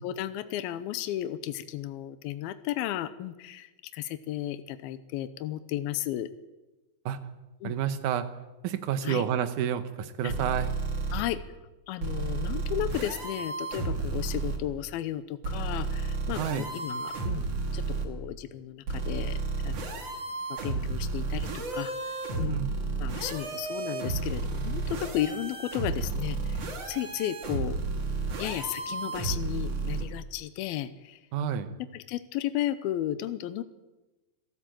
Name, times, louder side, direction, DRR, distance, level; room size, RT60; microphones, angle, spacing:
voice 1, 0.0-6.3 7.6-7.8 9.0-9.2 10.2-10.3 11.1-11.4 11.9-17.4 17.7-19.4 19.6-20.0 20.5-21.9 22.4-22.6 23.0-26.6 26.9-27.8 28.4-31.2 31.9-33.6, left 12 dB, 85° left, 12 dB, 2.7 m, -34 dB
voice 2, 7.6-8.2 8.6-10.7 16.4-16.7 22.5-22.7 31.3-31.7, right 9 dB, 65° right, 10 dB, 2.4 m, -29 dB
sound 1, 10.3-11.2 12.0-14.6 15.4-18.1 18.9-30.0, right 3 dB, 45° right, 3.3 m, -32 dB
26.0 x 13.5 x 7.7 m, 1.1 s
omnidirectional pair, 4.3 m